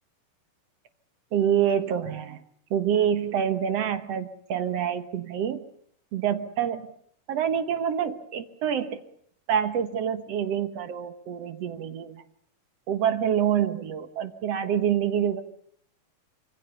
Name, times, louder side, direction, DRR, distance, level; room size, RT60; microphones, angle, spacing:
voice 1, 1.3-2.4 2.7-5.6 6.1-6.9 7.3-9.0 9.5-12.2 12.9-15.4, right 9 dB, 60° right, 10 dB, 1.9 m, -26 dB
25.5 x 24.0 x 6.9 m, 0.67 s
omnidirectional pair, 4.2 m